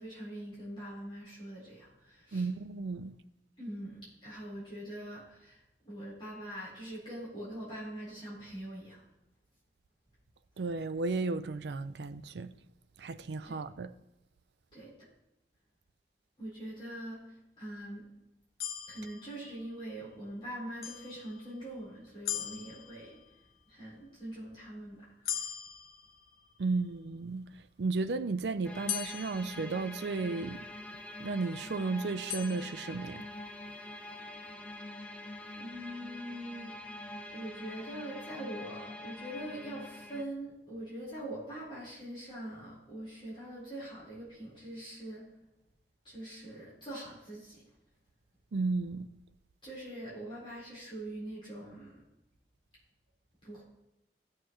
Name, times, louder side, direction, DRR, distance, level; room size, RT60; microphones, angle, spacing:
voice 1, 0.0-2.5 3.6-9.0 13.4-13.6 14.7-14.9 16.4-18.0 18.9-23.2 23.7-25.4 35.5-36.8 37.3-45.3 46.0-47.6 49.6-52.0 53.4-53.6, right 1 dB, 30° left, 4.1 m, -43 dB
voice 2, 2.3-3.2 10.6-12.5 13.0-13.9 26.6-27.5 27.8-30.6 31.2-33.3 48.5-49.1, right 3 dB, 70° right, 0.5 m, -34 dB
sound 1, 18.6-19.9 20.8-21.7 22.2-23.5 25.2-26.8 28.9-30.5 32.3-33.5, left 10 dB, 55° left, 0.6 m, -41 dB
sound 2, 28.6-40.2, left 1 dB, 10° left, 0.6 m, -45 dB
17.0 x 6.6 x 3.1 m
head